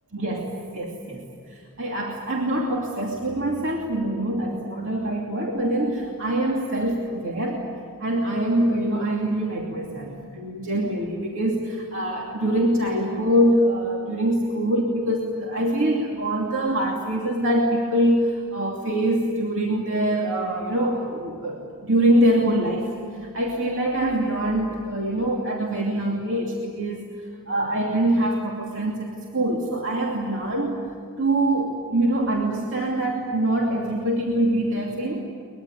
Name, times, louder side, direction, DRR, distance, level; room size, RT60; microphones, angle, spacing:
voice 1, 0.1-1.2 1.5-7.6 8.0-27.1 27.5-30.8 31.2-35.3, right 1 dB, 60° right, -1 dB, 2.7 m, -24 dB
23.5 x 22.0 x 9.8 m, 2.2 s
head